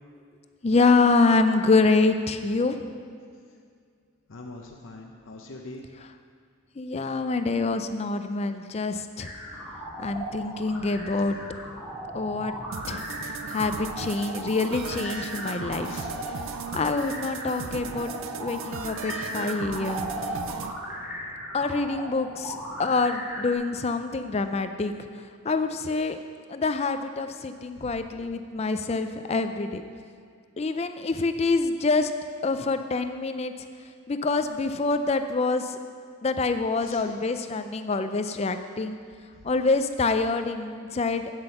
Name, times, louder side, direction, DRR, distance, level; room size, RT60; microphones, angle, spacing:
voice 1, 0.6-2.8 6.0-6.1 6.8-9.3 10.0-11.4 12.1-12.5 12.9-13.1 13.5-16.1 16.7-18.1 18.4-20.1 21.5-24.9 25.4-26.2 26.5-29.8 30.6-32.1 32.4-33.5 34.1-35.8 36.2-39.0 39.4-41.3, left 3 dB, 30° left, 8 dB, 0.4 m, -26 dB
voice 2, 4.3-5.8 15.9-16.1 17.6-18.0 27.8-27.9 36.8-37.0, left 2 dB, 65° left, 1 dB, 0.7 m, -43 dB
sound 1, 9.2-23.5, equal, 5° right, 2.4 m, -37 dB
sound 2, 12.7-20.7, right 6 dB, 65° right, 0.4 m, -37 dB
8.9 x 7.8 x 5.6 m, 2.2 s
head